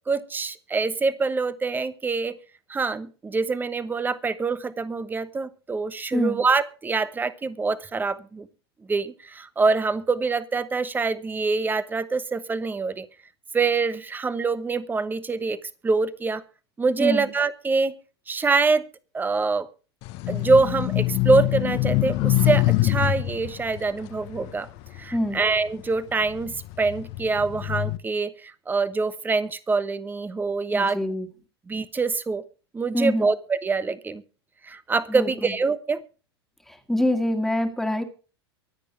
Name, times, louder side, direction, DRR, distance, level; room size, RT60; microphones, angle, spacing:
voice 1, 0.1-2.3 2.7-8.5 8.9-13.1 13.5-16.4 16.8-17.9 18.3-18.9 19.1-19.7 20.3-24.7 25.0-31.0 31.7-32.4 32.7-34.2 34.6-36.0, right 4 dB, 15° right, 15 dB, 1.0 m, -25 dB
sound 1, 20.0-25.6 26.1-28.0, left 18 dB, 45° left, 1.1 m, -25 dB
voice 2, 30.7-31.3 32.9-33.3 35.1-35.5 36.7-38.0, left 1 dB, ahead, 5 dB, 2.1 m, -25 dB
24.0 x 8.3 x 3.4 m, 0.36 s
figure-of-eight pair, 95°, 14 cm